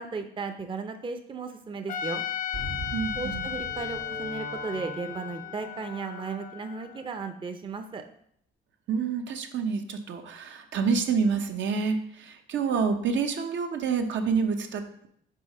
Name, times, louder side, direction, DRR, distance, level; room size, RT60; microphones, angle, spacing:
voice 1, 0.0-2.2 3.2-8.0, right 4 dB, 25° right, 6 dB, 0.6 m, -35 dB
Trumpet, 1.9-7.1, left 10 dB, 45° left, 0.5 m, -35 dB
sound 1, 2.5-7.0, right 2 dB, 85° right, 1.6 m, -41 dB
voice 2, 2.9-3.6 8.9-15.1, right 5 dB, 70° right, 5 dB, 0.9 m, -28 dB
5.4 x 4.0 x 5.4 m, 0.67 s
cardioid pair, 90°, 20 cm